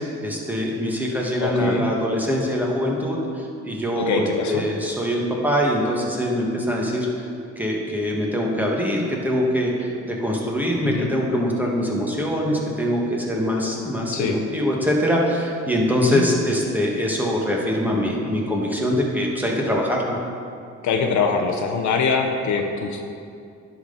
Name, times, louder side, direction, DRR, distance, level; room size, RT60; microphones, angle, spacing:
voice 1, 0.0-7.1 7.6-20.2, equal, 5° right, -2 dB, 1.5 m, -23 dB
voice 2, 1.4-1.9 4.0-4.7 10.8-11.1 14.1-14.4 16.0-16.3 20.8-23.0, left 5 dB, 70° left, 4 dB, 0.9 m, -23 dB
10.0 x 5.9 x 4.0 m, 2.4 s
cardioid pair, 90°, 30 cm